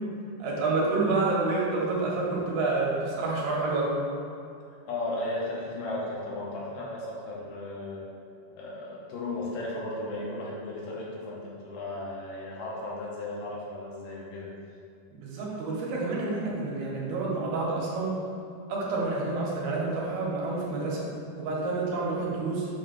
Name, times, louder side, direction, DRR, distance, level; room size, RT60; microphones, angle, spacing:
voice 1, 0.4-4.0 15.1-18.2 18.7-21.1 21.4-22.7, right 3 dB, 80° right, -5 dB, 3.1 m, -28 dB
voice 2, 4.8-8.1 8.5-14.5, left 2 dB, 75° left, -4 dB, 2.3 m, -35 dB
7.3 x 3.0 x 5.9 m, 2.5 s
omnidirectional pair, 4.4 m